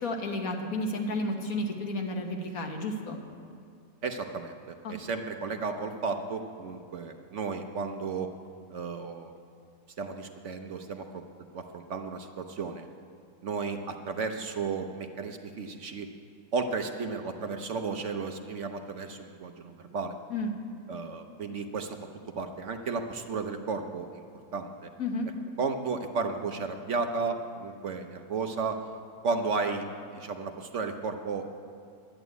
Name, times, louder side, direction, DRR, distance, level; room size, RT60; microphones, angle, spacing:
voice 1, 0.0-3.2 4.8-4.9 20.3-20.5 25.0-25.3, left 1 dB, 65° left, 3 dB, 1.7 m, -32 dB
voice 2, 4.0-8.3 8.7-9.3 10.0-11.2 11.5-12.9 13.4-16.1 16.5-20.2 20.9-22.0 22.4-24.2 24.5-24.9 25.6-28.8 29.2-31.5, right 4 dB, 55° right, 6 dB, 1.0 m, -33 dB
11.0 x 10.5 x 8.1 m, 2.3 s
omnidirectional pair, 1.6 m